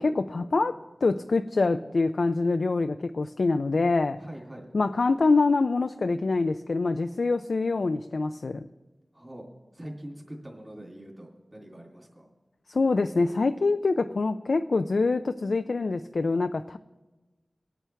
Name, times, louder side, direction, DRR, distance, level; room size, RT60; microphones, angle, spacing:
voice 1, 0.0-4.2 4.7-8.7 12.7-16.8, left 3 dB, 80° left, 8 dB, 0.3 m, -25 dB
voice 2, 4.2-4.7 9.1-9.5 9.7-12.3, right 1 dB, 25° right, -1 dB, 2.8 m, -43 dB
21.5 x 9.2 x 3.4 m, 1.2 s
wide cardioid pair, 50°, 0 cm